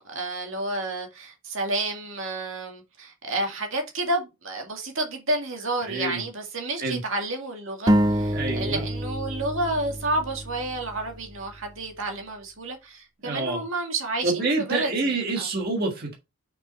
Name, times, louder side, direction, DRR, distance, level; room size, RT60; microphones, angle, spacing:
voice 1, 0.0-14.9 15.4-15.5, right 2 dB, 65° right, 2.1 m, -30 dB
voice 2, 5.8-6.3 6.8-7.0 8.3-8.8 13.2-13.6 14.2-16.1, right 3 dB, 45° right, 1.8 m, -27 dB
sound 1, 7.9-11.5, equal, 20° right, 0.5 m, -26 dB
6.4 x 5.3 x 4.2 m
head